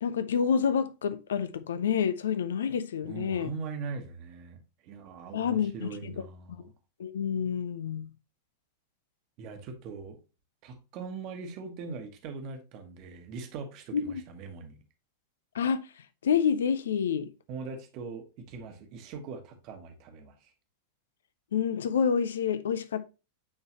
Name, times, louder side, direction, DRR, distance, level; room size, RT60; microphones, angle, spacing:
voice 1, 0.0-3.5 5.3-6.2 7.0-8.1 13.9-14.2 15.5-15.9 16.2-17.3 21.5-23.0, left 7 dB, 65° left, 0.4 m, -28 dB
voice 2, 3.0-6.7 9.4-10.2 10.6-14.8 17.5-20.5, right 4 dB, 40° right, 1.3 m, -41 dB
8.6 x 3.8 x 2.9 m
figure-of-eight pair, 90°, 0 cm